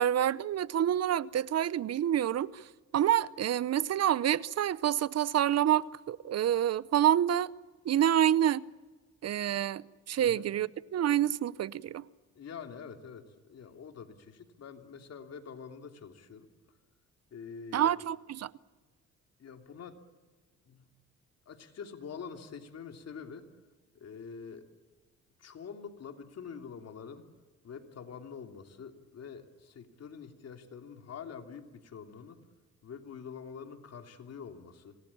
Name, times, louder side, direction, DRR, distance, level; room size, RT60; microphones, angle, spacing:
voice 1, 0.0-2.7 2.9-7.5 7.8-8.7 9.2-12.0 17.7-18.5, right 11 dB, 55° right, 0.8 m, -27 dB
voice 2, 10.2-10.5 12.3-16.5 17.3-18.0 19.4-20.0 20.7-20.8 21.5-23.5 23.9-24.7 25.4-27.3 27.6-32.4 32.8-35.0, left 6 dB, 55° left, 3.1 m, -46 dB
26.0 x 19.0 x 8.7 m
cardioid pair, 90°, 30 cm